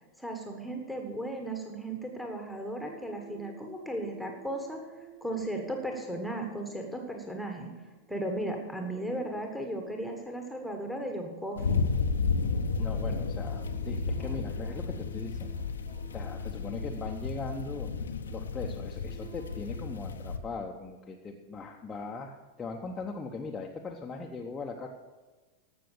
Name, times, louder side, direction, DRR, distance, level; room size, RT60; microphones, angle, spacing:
voice 1, 0.2-4.8 5.2-7.7 8.1-11.8, right 1 dB, ahead, 2 dB, 1.5 m, -36 dB
sound 1, 2.8-18.0 18.6-20.0, right 6 dB, 50° right, 1.6 m, -54 dB
sound 2, 11.6-20.4, left 4 dB, 70° left, 0.8 m, -32 dB
voice 2, 12.8-15.5 16.1-17.9 18.3-24.9, left 4 dB, 20° left, 0 dB, 0.9 m, -40 dB
15.5 x 6.1 x 6.7 m, 1.3 s
figure-of-eight pair, 90°, 0 cm